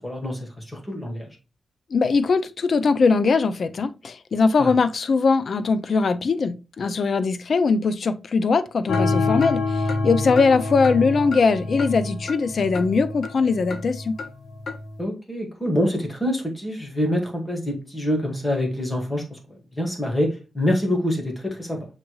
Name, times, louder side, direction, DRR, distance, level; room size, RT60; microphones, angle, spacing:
voice 1, 0.0-1.4 4.6-4.7 10.3-10.4 15.0-19.4 19.8-21.9, left 1 dB, 15° left, 1.2 m, -26 dB
voice 2, 1.9-14.2, left 4 dB, 50° left, 0.4 m, -21 dB
sound 1, 8.9-14.9, left 3 dB, 70° left, 0.8 m, -27 dB
6.4 x 3.1 x 2.2 m
wide cardioid pair, 165°, 0 cm